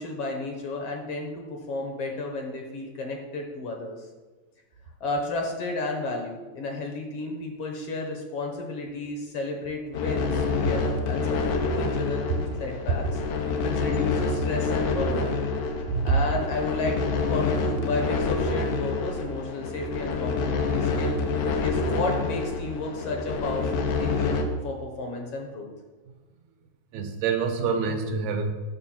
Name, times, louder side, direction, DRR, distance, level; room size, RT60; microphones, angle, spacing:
voice 1, 0.0-4.1 5.0-13.2 13.6-15.3 15.8-21.2 21.6-25.7, left 2 dB, 65° left, 1 dB, 1.7 m, -32 dB
sound 1, 9.9-24.4, left 4 dB, 90° left, 2.3 m, -27 dB
voice 2, 26.9-28.5, right 5 dB, 80° right, 5 dB, 2.2 m, -27 dB
9.1 x 6.5 x 4.3 m, 1.3 s
omnidirectional pair, 3.4 m